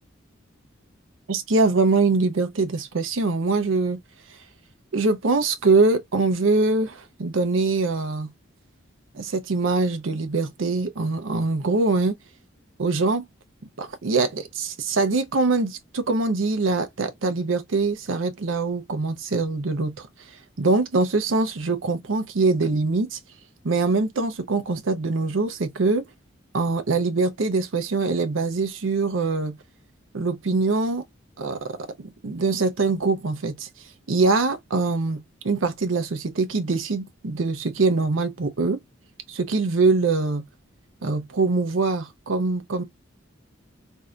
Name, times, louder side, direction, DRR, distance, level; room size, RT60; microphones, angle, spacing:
voice 1, 1.3-4.0 4.9-8.3 9.1-12.2 12.8-13.2 13.8-20.1 20.6-23.2 23.6-26.0 26.5-29.6 30.1-31.0 31.4-31.8 32.2-33.7 34.1-38.8 39.3-40.4 41.0-42.8, right 3 dB, 80° right, 0.7 m, -23 dB
2.7 x 2.5 x 3.2 m
head